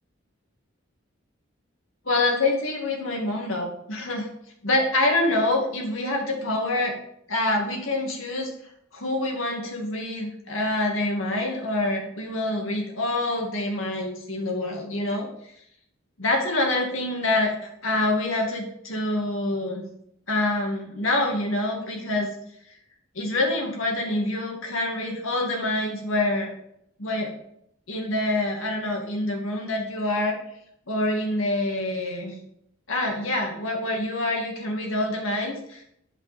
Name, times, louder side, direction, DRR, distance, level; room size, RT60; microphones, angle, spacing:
voice 1, 2.1-4.3 4.6-7.0 7.3-8.5 8.9-15.3 16.2-19.8 20.3-22.3 23.1-26.5 27.0-27.3 27.9-30.4 30.9-32.4 32.9-35.8, left 2 dB, 90° left, 1 dB, 2.3 m, -26 dB
8.4 x 5.3 x 5.2 m, 0.74 s
head